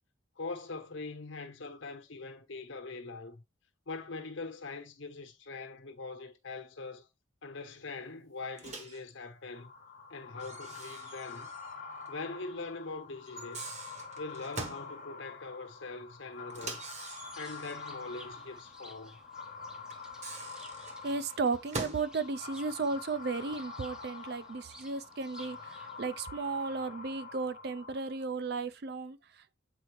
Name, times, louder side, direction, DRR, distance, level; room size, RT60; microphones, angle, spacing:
voice 1, 0.4-3.4 3.9-7.1 7.4-9.7 10.1-11.5 12.1-13.7 14.2-16.9 17.4-19.2, left 3 dB, 75° left, 1.1 m, -42 dB
Microwave oven, 8.6-9.0 10.4-11.8 12.1-12.2 13.3-14.9 16.5-17.9 19.9-22.1, right 3 dB, 35° right, 1.0 m, -43 dB
sound 1, 9.5-28.4, left 4 dB, 40° left, 0.8 m, -46 dB
Bird, 17.2-26.2, equal, 5° right, 0.5 m, -57 dB
voice 2, 21.0-29.6, right 4 dB, 55° right, 0.4 m, -35 dB
7.9 x 4.3 x 3.1 m
head